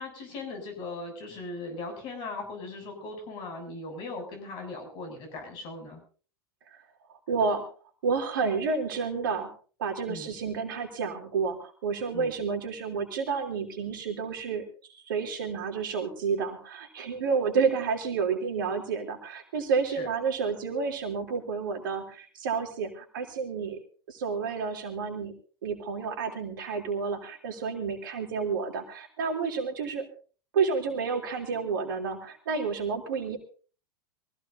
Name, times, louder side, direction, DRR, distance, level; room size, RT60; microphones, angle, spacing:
voice 1, 0.0-6.0 10.1-10.4 12.1-12.3 20.0-20.1, left 3 dB, 40° left, 4 dB, 7.4 m, -39 dB
voice 2, 7.3-7.6 8.0-9.5 9.8-14.6 14.9-23.8 24.1-25.3 25.6-30.0 30.5-33.4, right 5 dB, 65° right, 4 dB, 3.2 m, -30 dB
23.5 x 16.0 x 2.7 m, 0.39 s
figure-of-eight pair, 85°, 12 cm